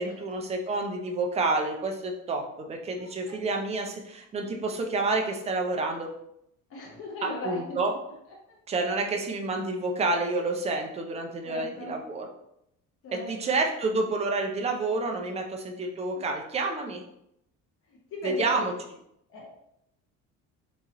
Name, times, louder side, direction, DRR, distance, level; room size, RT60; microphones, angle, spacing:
voice 1, 0.0-6.1 7.2-7.9 8.7-12.3 13.1-17.0 18.2-18.7, right 3 dB, 20° right, 2 dB, 0.4 m, -29 dB
voice 2, 3.0-3.4 6.7-7.8 8.5-8.6 11.4-11.9 13.0-13.3 17.9-18.7 19.3-19.5, left 2 dB, 45° left, -3 dB, 0.9 m, -38 dB
3.6 x 2.9 x 2.9 m, 0.78 s
cardioid pair, 150°, 32 cm